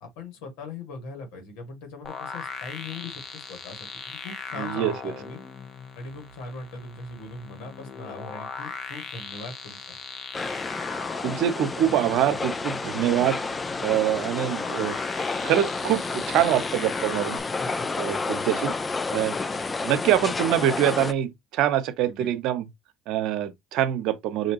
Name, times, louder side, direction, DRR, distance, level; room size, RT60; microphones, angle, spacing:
voice 1, 0.0-5.4 5.9-10.0 17.6-17.7 22.0-22.3, left 3 dB, 80° left, 2.1 m, -40 dB
sound 1, 2.0-17.4, left 6 dB, 50° left, 0.9 m, -39 dB
voice 2, 4.6-5.1 11.2-13.4 13.8-15.0 15.4-17.4 18.0-18.7 19.1-19.4 19.8-22.6 23.1-24.5, right 11 dB, 70° right, 0.7 m, -24 dB
sound 2, 10.3-21.1, left 3 dB, 20° left, 0.4 m, -30 dB
5.7 x 2.7 x 2.9 m
supercardioid pair, 90°, 0 cm